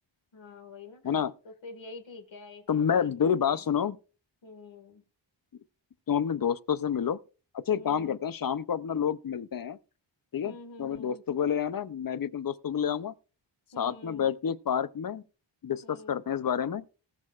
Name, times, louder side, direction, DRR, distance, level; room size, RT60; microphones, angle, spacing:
voice 1, 0.3-1.1 1.4-3.6 4.4-5.0 7.7-8.2 10.4-11.2 13.7-14.3 15.8-16.2, left 3 dB, 75° left, 1.9 m, -47 dB
voice 2, 2.7-4.0 6.1-7.2 7.5-9.8 10.3-10.5 10.8-13.1 13.8-15.2 15.6-16.8, left 8 dB, 50° left, 0.6 m, -29 dB
19.0 x 6.4 x 2.4 m
wide cardioid pair, 120°, 45 cm